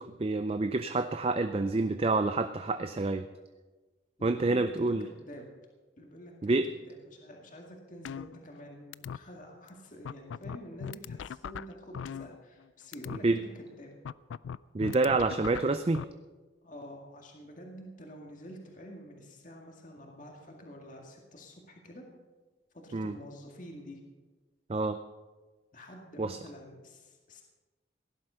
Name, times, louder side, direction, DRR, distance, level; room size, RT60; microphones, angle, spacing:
voice 1, 0.0-3.2 4.2-5.0 6.4-6.7 13.2-13.4 14.7-16.0 22.9-23.1 24.7-25.0 26.2-26.4, right 3 dB, 30° right, 9 dB, 0.4 m, -28 dB
voice 2, 4.2-5.5 6.0-13.9 16.6-22.1 22.7-24.0 25.7-27.4, equal, 40° left, 1 dB, 2.0 m, -48 dB
sound 1, 8.1-8.7 8.9-9.2 9.7-9.8 10.1-12.7 12.9-13.2 14.1-16.0, left 7 dB, 80° left, 0.3 m, -39 dB
17.0 x 11.0 x 5.6 m, 1.3 s
head